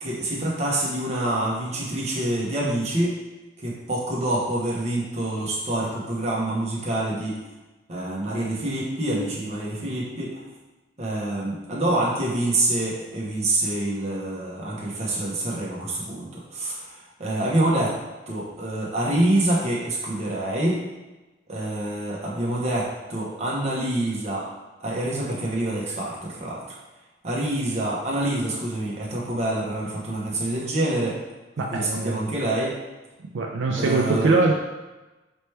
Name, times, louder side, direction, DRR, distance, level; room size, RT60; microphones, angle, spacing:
voice 1, 0.0-3.2 3.6-7.4 7.9-10.3 11.0-17.9 18.3-20.8 21.5-24.5 24.8-26.7 27.2-31.2 31.6-32.8 33.7-34.4, right 1 dB, 35° right, -5 dB, 1.0 m, -26 dB
voice 2, 31.6-32.2 33.3-34.5, right 3 dB, 75° right, 0 dB, 0.4 m, -22 dB
4.4 x 3.0 x 3.3 m, 1.1 s
head